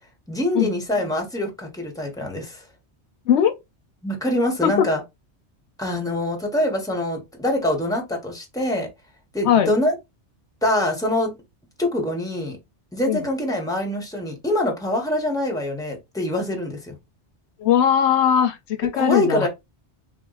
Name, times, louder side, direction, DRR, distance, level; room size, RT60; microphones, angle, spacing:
voice 1, 0.3-2.6 4.0-5.0 5.8-8.9 9.3-9.9 10.6-11.3 11.8-12.6 12.9-16.9 18.8-19.5, left 1 dB, 5° left, 1.1 m, -24 dB
voice 2, 17.6-19.5, left 9 dB, 75° left, 0.9 m, -19 dB
3.7 x 2.5 x 3.9 m
omnidirectional pair, 1.2 m